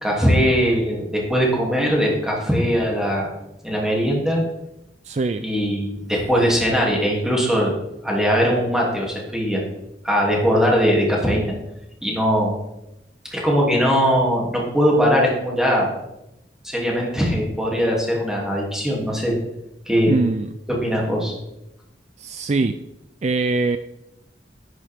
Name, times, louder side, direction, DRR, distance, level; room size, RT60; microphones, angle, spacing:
voice 1, 0.0-3.3 3.6-4.4 5.4-7.7 8.0-9.6 10.0-11.5 12.0-12.5 13.2-15.9 16.6-19.3 19.9-20.2 20.8-21.4, equal, 5° right, -3 dB, 2.7 m, -20 dB
voice 2, 5.0-5.4 20.1-20.6 22.2-22.8 23.2-23.8, right 3 dB, 40° right, 9 dB, 0.4 m, -22 dB
10.5 x 10.0 x 3.6 m, 0.88 s
head